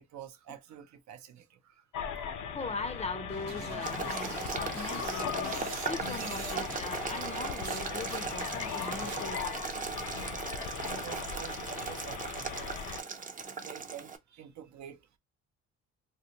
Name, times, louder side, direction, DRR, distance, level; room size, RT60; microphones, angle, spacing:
voice 1, 0.0-1.8 4.4-4.5 6.5-6.6 8.7-9.9 10.2-13.0 13.6-15.2, right 9 dB, 65° right, 0.6 m, -50 dB
sound 1, 1.9-13.0, left 7 dB, 80° left, 0.6 m, -38 dB
voice 2, 2.5-9.6, left 3 dB, 20° left, 0.5 m, -40 dB
sound 2, 3.3-7.8 8.1-9.4, right 5 dB, 85° right, 1.0 m, -45 dB
Boiling, 3.9-14.2, right 5 dB, 25° right, 0.5 m, -38 dB
3.6 x 2.1 x 2.8 m
cardioid pair, 90°, 30 cm